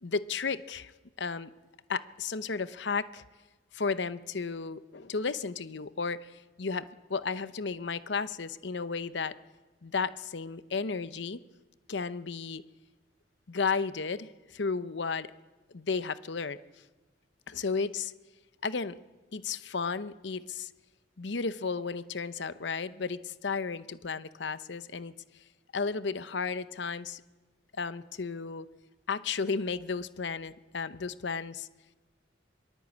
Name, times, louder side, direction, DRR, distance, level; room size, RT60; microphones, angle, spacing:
voice 1, 0.0-0.9 1.2-1.5 1.9-3.2 3.7-6.3 6.6-9.3 9.8-11.4 11.9-12.6 13.5-15.3 15.7-16.6 17.5-18.1 18.6-19.0 19.3-20.7 21.2-25.1 25.7-27.2 27.7-28.7 29.1-31.7, left 5 dB, 65° left, 14 dB, 0.8 m, -33 dB
22.5 x 22.5 x 8.4 m, 1.2 s
head